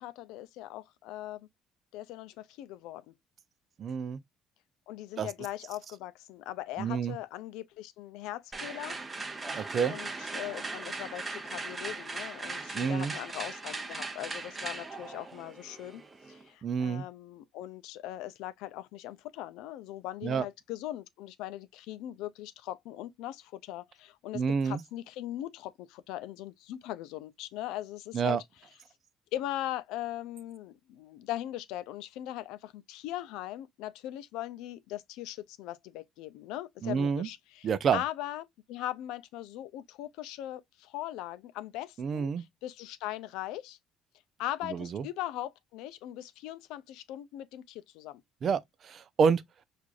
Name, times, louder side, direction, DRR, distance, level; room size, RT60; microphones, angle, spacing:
voice 1, 0.0-1.5 1.9-3.1 4.9-9.0 9.8-16.0 16.3-28.4 29.3-43.8 44.4-48.2, left 14 dB, 85° left, 0.4 m, -40 dB
voice 2, 3.8-4.2 5.2-5.3 6.8-7.2 9.5-9.9 12.7-13.1 16.6-17.0 20.2-20.5 24.3-24.8 28.1-28.4 36.8-37.3 37.6-38.0 42.0-42.4 44.7-45.0 48.4-49.4, right 6 dB, 50° right, 0.4 m, -28 dB
sound 1, 8.5-16.5, right 3 dB, 20° right, 0.8 m, -39 dB
4.6 x 2.5 x 2.4 m
cardioid pair, 95°, 0 cm